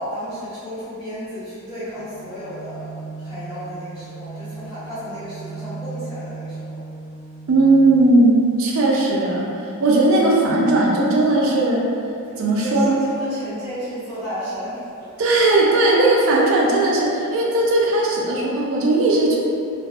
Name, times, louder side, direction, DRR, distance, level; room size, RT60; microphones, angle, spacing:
voice 1, 0.0-6.8 12.3-15.1, equal, 5° right, -18 dB, 0.6 m, -33 dB
sound 1, 2.0-7.9, right 4 dB, 40° left, 0.5 m, -36 dB
voice 2, 7.5-11.9 12.4-12.9 15.2-19.4, right 2 dB, 70° right, -3 dB, 0.4 m, -17 dB
2.5 x 2.3 x 2.3 m, 2.5 s
head